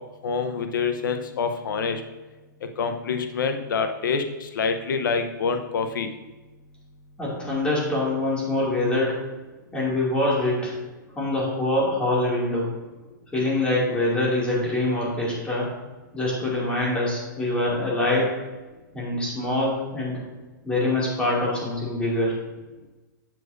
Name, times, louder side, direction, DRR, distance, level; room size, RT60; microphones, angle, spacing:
voice 1, 0.2-2.0 2.8-6.1, left 5 dB, 70° left, 7 dB, 0.8 m, -26 dB
voice 2, 7.2-9.2 9.7-10.7 11.2-12.7 13.3-15.7 16.1-18.3 18.9-20.1 20.6-22.3, left 1 dB, 10° left, -6 dB, 2.4 m, -24 dB
7.9 x 7.5 x 2.6 m, 1.2 s
hypercardioid pair, 145°, 11 cm